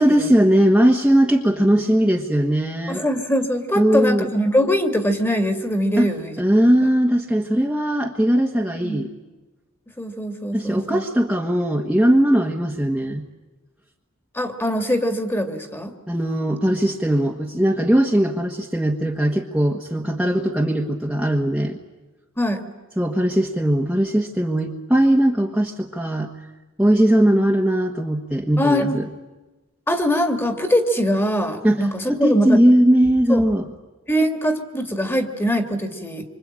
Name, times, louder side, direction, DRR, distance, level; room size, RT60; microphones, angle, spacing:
voice 1, 0.0-3.0 3.8-4.3 6.0-6.1 6.4-9.1 10.5-13.2 16.1-21.8 23.0-26.3 26.8-29.0 31.6-33.7, right 1 dB, 5° right, -1 dB, 1.4 m, -19 dB
voice 2, 2.9-6.3 8.8-9.0 10.0-11.0 14.3-15.9 22.4-22.6 28.6-29.0 29.9-32.6 33.3-33.5 34.1-36.3, equal, 10° left, 7 dB, 2.1 m, -22 dB
26.5 x 25.5 x 8.9 m, 1.2 s
head